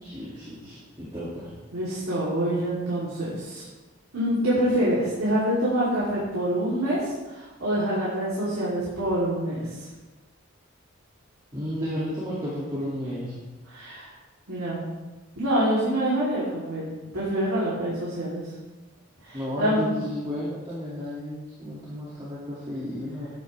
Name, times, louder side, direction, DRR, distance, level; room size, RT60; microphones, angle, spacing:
voice 1, 0.0-1.5 11.5-13.3 19.3-23.3, equal, 20° right, -8 dB, 2.4 m, -33 dB
voice 2, 1.7-3.6 4.1-9.9 13.6-14.1 14.5-14.8 15.3-18.5 19.2-19.9, right 1 dB, 80° right, -9 dB, 3.1 m, -26 dB
13.0 x 9.5 x 3.4 m, 1.2 s
head